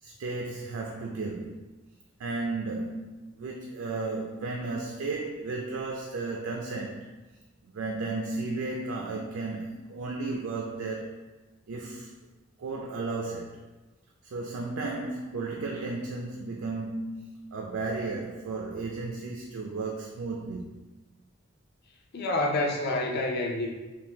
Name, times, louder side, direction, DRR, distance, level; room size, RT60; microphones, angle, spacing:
voice 1, 0.0-1.6 2.2-7.1 7.7-11.2 11.7-12.1 12.6-13.6 14.2-20.7, right 3 dB, 70° right, 0 dB, 0.4 m, -34 dB
voice 2, 22.1-23.7, left 2 dB, 50° left, 1 dB, 0.5 m, -28 dB
3.5 x 2.5 x 2.7 m, 1.2 s
head